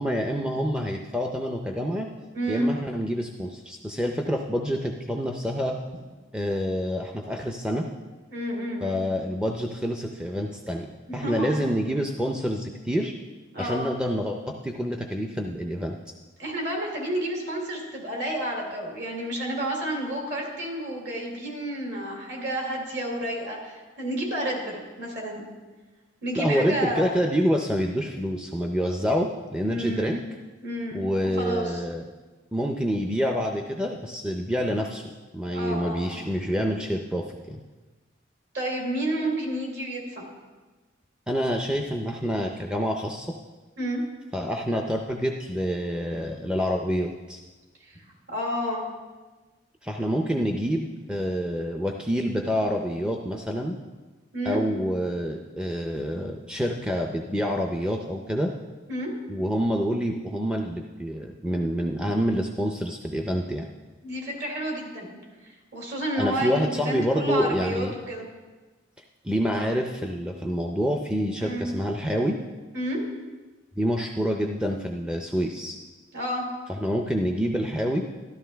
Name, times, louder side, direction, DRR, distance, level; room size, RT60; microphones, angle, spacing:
voice 1, 0.0-2.1 2.5-5.7 6.3-7.9 8.8-13.1 13.6-16.0 26.4-30.2 30.9-32.0 32.5-37.6 41.3-43.3 44.3-47.4 49.8-53.8 54.5-58.5 59.3-63.7 66.2-67.9 69.2-72.4 73.8-75.8 76.7-78.0, equal, 5° right, 2 dB, 0.4 m, -27 dB
voice 2, 2.3-2.7 8.3-9.0 11.1-11.5 13.5-13.8 16.4-25.4 26.2-27.2 29.7-30.2 30.6-31.8 35.5-36.3 38.5-40.2 43.8-44.0 47.9-48.0 48.3-48.8 54.3-54.6 58.9-59.1 64.0-65.1 65.4-68.3 71.4-71.7 72.7-73.0 76.1-76.4, right 1 dB, 55° right, 0 dB, 2.9 m, -30 dB
13.0 x 12.0 x 3.4 m, 1.3 s
head